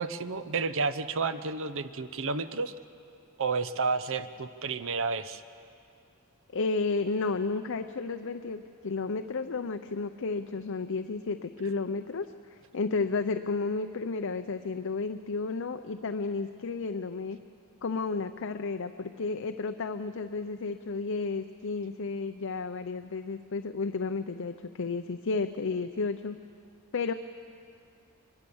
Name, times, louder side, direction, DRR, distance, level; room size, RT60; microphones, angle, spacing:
voice 1, 0.0-2.7 3.4-5.4, right 4 dB, 65° right, 12 dB, 0.8 m, -31 dB
voice 2, 6.5-17.4 17.8-26.4 26.9-27.1, left 4 dB, 65° left, 8 dB, 0.6 m, -32 dB
24.0 x 21.5 x 7.1 m, 2.5 s
head